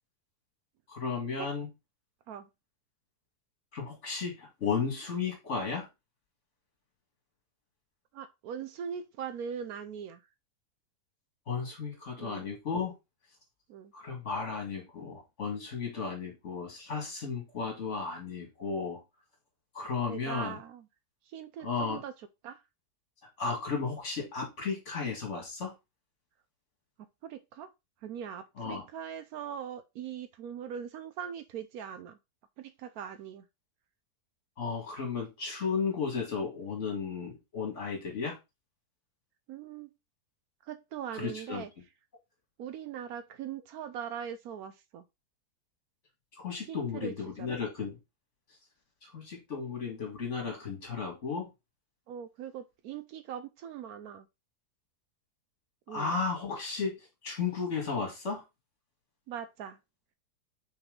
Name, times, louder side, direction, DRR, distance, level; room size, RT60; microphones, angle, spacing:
voice 1, 0.9-1.7 3.7-5.9 11.5-12.9 13.9-19.0 19.7-20.6 21.6-22.0 23.4-25.7 28.6-28.9 34.6-38.4 41.1-41.6 46.4-48.0 49.0-51.5 55.9-58.4, left 5 dB, 45° left, 2.4 m, -34 dB
voice 2, 8.1-10.2 12.2-12.5 13.7-13.9 20.0-20.8 21.3-22.1 22.4-22.6 27.2-27.7 28.0-32.2 32.6-33.4 39.5-39.9 40.6-41.7 42.6-45.0 46.7-47.1 47.4-47.5 52.1-54.3 55.9-56.1 59.3-59.8, right 8 dB, 75° right, 1.0 m, -41 dB
5.8 x 4.4 x 3.8 m
omnidirectional pair, 1.7 m